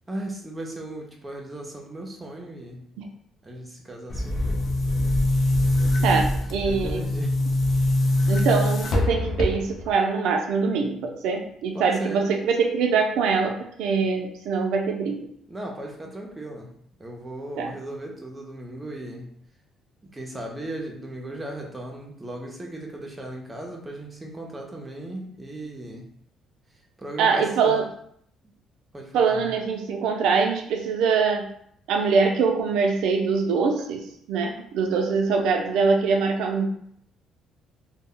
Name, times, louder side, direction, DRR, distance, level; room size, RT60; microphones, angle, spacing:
voice 1, 0.1-2.8 3.4-4.8 5.7-6.4 6.6-7.4 8.0-8.4 11.7-12.2 15.5-16.7 17.0-19.3 20.1-26.1 27.0-27.8 28.9-29.5, right 1 dB, 10° right, 0 dB, 0.4 m, -37 dB
Boom, 4.1-9.9, left 1 dB, 45° left, 0.5 m, -23 dB
voice 2, 6.0-7.0 8.3-15.3 17.6-17.7 27.2-27.9 29.1-31.5 31.9-36.7, right 5 dB, 85° right, 3 dB, 0.4 m, -23 dB
2.0 x 2.0 x 3.6 m, 0.67 s
cardioid pair, 160°, 0 cm